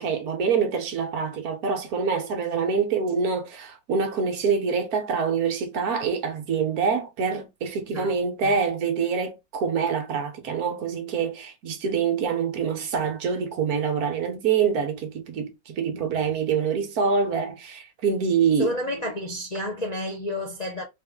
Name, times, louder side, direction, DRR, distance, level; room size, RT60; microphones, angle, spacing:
voice 1, 0.0-18.7, right 6 dB, 60° right, 1.2 m, -25 dB
voice 2, 15.9-16.2 18.6-20.8, left 1 dB, 85° left, 0.3 m, -30 dB
3.6 x 2.6 x 3.5 m
omnidirectional pair, 1.9 m